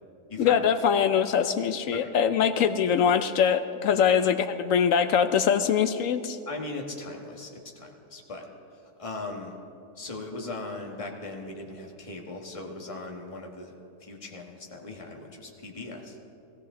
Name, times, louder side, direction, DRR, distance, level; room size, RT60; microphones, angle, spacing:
voice 1, 0.4-6.4, left 7 dB, 70° left, 10 dB, 0.8 m, -23 dB
voice 2, 6.5-8.5 8.7-9.5 9.9-13.7 14.0-16.2, left 2 dB, 20° left, 1 dB, 1.3 m, -39 dB
16.0 x 16.0 x 3.7 m, 2.6 s
omnidirectional pair, 1.7 m